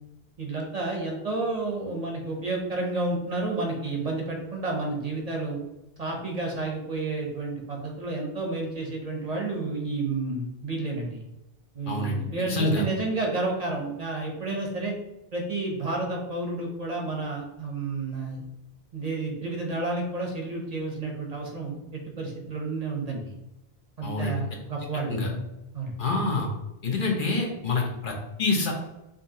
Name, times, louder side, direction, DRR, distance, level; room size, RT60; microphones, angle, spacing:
voice 1, 0.4-5.6 6.0-11.2 11.7-14.9 15.3-18.4 18.9-23.3 24.0-25.4 25.7-26.0, right 3 dB, 45° right, 0 dB, 0.7 m, -31 dB
voice 2, 11.9-12.2 12.5-12.8 24.0-24.3 25.1-25.3 26.0-26.5 26.8-28.7, left 3 dB, 60° left, 0 dB, 0.9 m, -26 dB
5.1 x 2.7 x 2.7 m, 0.90 s
omnidirectional pair, 1.0 m